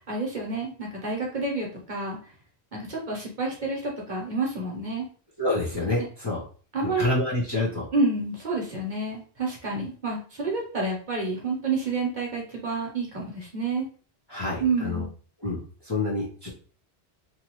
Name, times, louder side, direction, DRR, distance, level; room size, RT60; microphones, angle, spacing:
voice 1, 0.1-2.2 2.7-5.1 6.7-7.1 7.9-13.9 14.6-15.1, right 3 dB, 45° right, -2 dB, 0.9 m, -29 dB
voice 2, 5.4-6.4 6.8-7.9 14.3-15.0 15.4-16.5, left 2 dB, 25° left, -7 dB, 0.8 m, -28 dB
2.8 x 2.6 x 2.9 m, 0.41 s
omnidirectional pair, 1.1 m